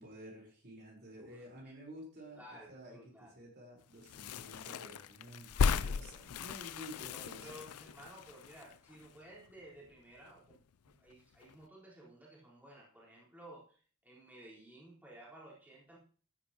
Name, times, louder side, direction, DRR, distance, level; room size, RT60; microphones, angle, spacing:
voice 1, 0.0-2.4 2.7-3.0 3.3-7.6, equal, 45° right, -2 dB, 4.2 m, -51 dB
voice 2, 1.2-1.7 2.4-3.3 7.1-16.0, right 1 dB, 10° right, -6 dB, 4.1 m, -55 dB
sound 1, 4.0-9.6 9.9-10.0 10.2-11.1 11.4-11.6, left 5 dB, 80° left, 0.5 m, -37 dB
13.5 x 10.0 x 3.0 m, 0.41 s
head